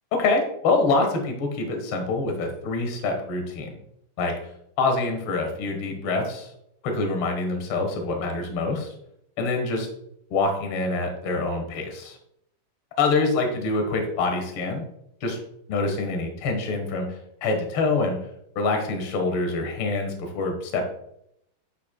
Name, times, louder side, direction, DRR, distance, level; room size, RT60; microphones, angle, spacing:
voice 1, 0.1-3.7 4.2-4.3 4.8-6.5 6.8-8.9 9.4-9.9 10.3-12.2 13.0-14.8 15.2-15.4 15.7-18.2 18.5-20.8, left 3 dB, 55° left, 4 dB, 1.7 m, -25 dB
10.0 x 5.8 x 2.2 m, 0.75 s
omnidirectional pair, 3.8 m